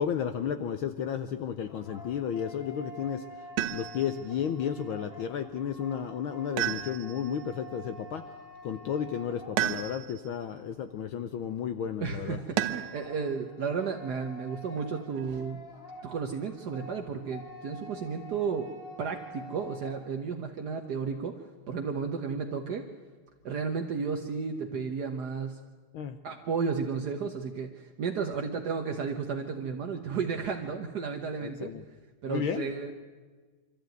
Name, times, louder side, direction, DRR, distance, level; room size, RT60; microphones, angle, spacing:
voice 1, 0.0-3.2 3.7-8.3 8.6-12.4 25.9-26.2 31.4-31.8 32.3-32.7, left 8 dB, 90° left, 10 dB, 1.1 m, -33 dB
sound 1, 1.3-10.1 12.4-20.1, left 1 dB, 15° left, 5.0 m, -48 dB
sound 2, 3.6-4.2 6.6-7.4 9.6-10.3 12.6-13.1 14.8-15.4, right 12 dB, 85° right, 2.3 m, -32 dB
voice 2, 12.0-15.6 16.0-18.7 19.0-21.4 21.7-22.9 23.4-25.6 26.2-31.7 32.2-32.9, right 5 dB, 60° right, 4 dB, 1.0 m, -33 dB
24.0 x 14.0 x 9.2 m, 1.4 s
omnidirectional pair, 3.4 m